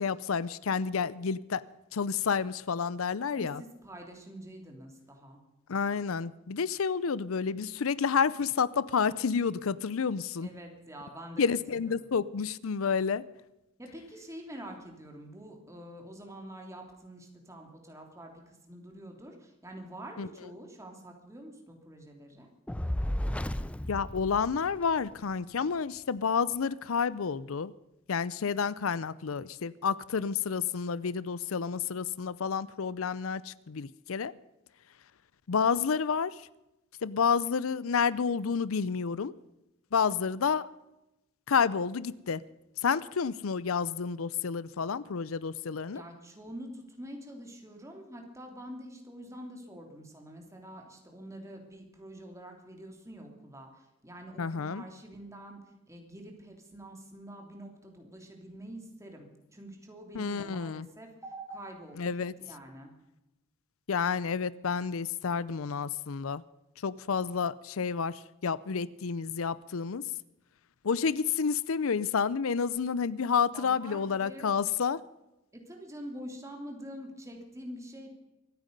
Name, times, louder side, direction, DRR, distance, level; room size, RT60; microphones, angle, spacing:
voice 1, 0.0-1.6 1.9-3.6 5.7-10.5 11.4-13.2 20.2-20.3 23.9-27.7 28.1-34.3 35.5-36.4 37.0-39.3 39.9-40.7 41.5-42.4 42.8-46.0 54.4-54.8 60.1-60.9 62.0-62.3 63.9-66.4 66.8-70.0 70.8-75.0, left 6 dB, 90° left, 18 dB, 0.6 m, -30 dB
voice 2, 3.3-5.4 10.4-11.4 11.8-12.2 13.8-22.5 45.9-55.6 55.9-59.3 59.5-62.9 73.5-74.5 75.7-78.1, right 1 dB, 15° right, 2 dB, 3.1 m, -46 dB
Fire, 22.7-25.1, equal, 5° left, 0.5 m, -33 dB
24.5 x 9.2 x 5.3 m, 0.94 s
head